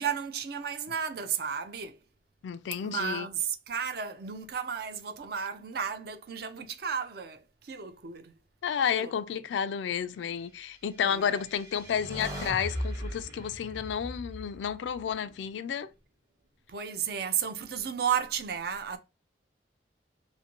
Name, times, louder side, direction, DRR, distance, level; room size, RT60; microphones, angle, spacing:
voice 1, 0.0-2.0 2.8-8.3 8.9-9.1 11.0-11.4 16.7-19.0, right 7 dB, 55° right, 0.4 m, -33 dB
voice 2, 2.4-3.3 8.6-15.9, left 8 dB, 80° left, 0.3 m, -31 dB
sound 1, 11.2-15.4, equal, 20° right, 0.7 m, -39 dB
2.6 x 2.5 x 2.9 m
head